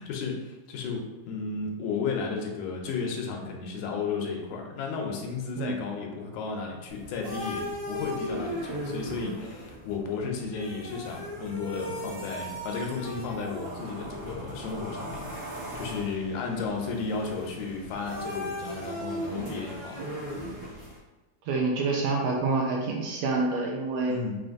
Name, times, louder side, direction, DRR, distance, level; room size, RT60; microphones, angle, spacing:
voice 1, 0.0-20.1 24.1-24.4, left 5 dB, 90° left, 1 dB, 2.0 m, -34 dB
sound 1, 6.9-21.0, equal, 40° right, 1.1 m, -37 dB
voice 2, 21.5-24.1, right 3 dB, 80° right, -1 dB, 1.6 m, -27 dB
5.7 x 2.5 x 2.5 m, 1.2 s
omnidirectional pair, 3.3 m